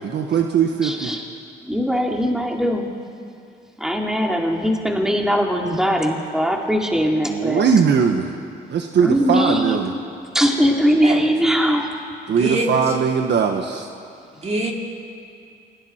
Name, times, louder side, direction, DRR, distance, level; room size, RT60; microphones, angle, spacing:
voice 1, 0.0-1.1 7.3-8.3 8.7-9.9 12.3-13.9, right 6 dB, 60° right, 4 dB, 1.3 m, -20 dB
voice 2, 0.8-1.2 1.7-2.9 3.8-7.7 9.0-9.8 10.3-11.9, equal, 5° right, 0 dB, 2.6 m, -20 dB
voice 3, 11.0-11.2 12.4-12.7 14.4-14.7, right 2 dB, 35° right, -1 dB, 3.8 m, -23 dB
28.5 x 22.0 x 4.5 m, 2.5 s
cardioid pair, 90°, 20 cm